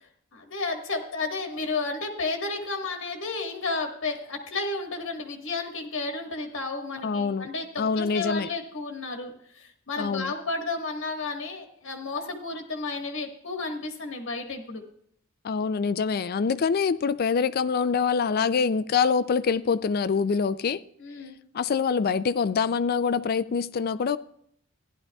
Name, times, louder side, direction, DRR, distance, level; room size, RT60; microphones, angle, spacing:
voice 1, 0.3-14.8 21.0-21.4, left 3 dB, 65° left, 1.5 m, -32 dB
voice 2, 7.0-7.5 7.8-8.5 10.0-10.3 15.4-20.8 21.5-24.2, left 5 dB, 45° left, 0.4 m, -25 dB
15.0 x 11.0 x 2.3 m
head